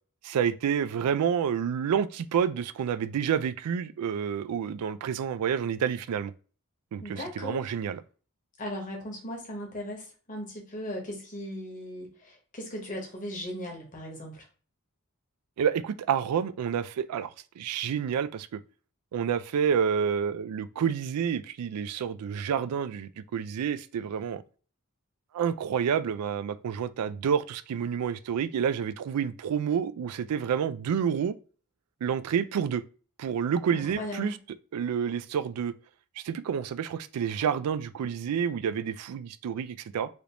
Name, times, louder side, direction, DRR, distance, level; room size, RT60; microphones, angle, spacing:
voice 1, 0.2-6.3 6.9-8.0 15.6-18.5 19.1-24.4 25.3-31.3 32.0-32.8 33.2-34.4 34.7-35.7 36.2-40.1, right 7 dB, 90° right, 0.3 m, -29 dB
voice 2, 7.0-7.6 8.6-14.4 33.7-34.4, left 1 dB, 35° left, 1.0 m, -38 dB
3.3 x 2.5 x 2.9 m
head